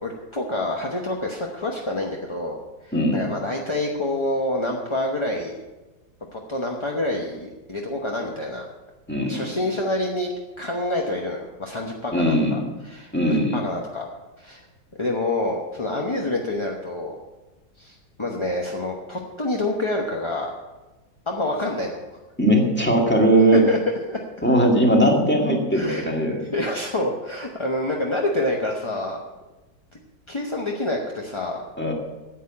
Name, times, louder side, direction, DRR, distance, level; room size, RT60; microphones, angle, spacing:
voice 1, 0.0-5.6 6.3-8.7 9.2-10.3 10.6-14.0 14.4-14.6 15.0-17.2 17.8-20.5 21.3-22.0 23.7-23.8 24.1-24.2 25.7-26.1 26.5-29.2 29.9-30.0 30.3-31.6, left 1 dB, 20° left, 0 dB, 0.8 m, -27 dB
voice 2, 2.9-3.3 9.1-9.5 12.1-12.6 13.1-13.6 22.4-23.6 24.4-26.4 31.8-31.9, right 1 dB, 5° left, 0 dB, 1.9 m, -19 dB
9.9 x 8.3 x 8.6 m, 1.1 s
omnidirectional pair, 1.8 m